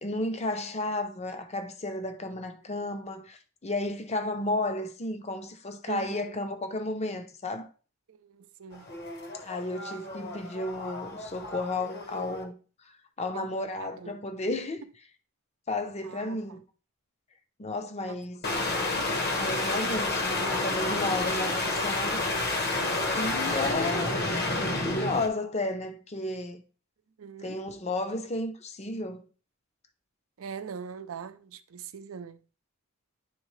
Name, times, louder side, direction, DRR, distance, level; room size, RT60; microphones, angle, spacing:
voice 1, 0.0-7.7 9.4-12.6 13.2-14.8 15.7-16.6 17.6-18.4 19.4-22.2 23.0-24.2 24.8-26.6 27.4-29.2, left 2 dB, 30° left, 0.7 m, -33 dB
voice 2, 8.1-8.9 13.3-14.1 16.0-16.4 18.1-18.2 27.2-27.6 30.4-32.4, right 6 dB, 80° right, 0.5 m, -41 dB
sound 1, 8.7-12.4 18.4-25.3, left 2 dB, 50° left, 1.1 m, -30 dB
10.0 x 3.6 x 3.2 m
head